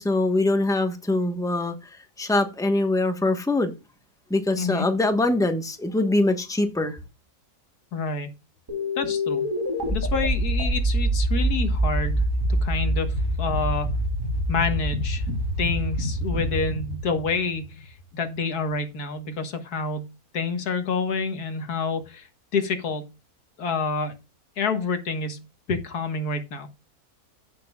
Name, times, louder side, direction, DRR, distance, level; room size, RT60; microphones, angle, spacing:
voice 1, 0.0-3.7 4.3-7.0, left 2 dB, 5° left, 1.1 m, -23 dB
voice 2, 4.6-4.9 7.9-8.3 9.0-9.5 9.9-12.2 12.6-13.9 14.5-15.2 15.6-22.3 22.5-23.1 23.6-24.2 24.6-25.4 25.7-26.7, left 4 dB, 85° left, 2.0 m, -28 dB
sound 1, 8.7-18.0, equal, 15° right, 2.4 m, -26 dB
15.0 x 6.3 x 2.4 m
omnidirectional pair, 1.6 m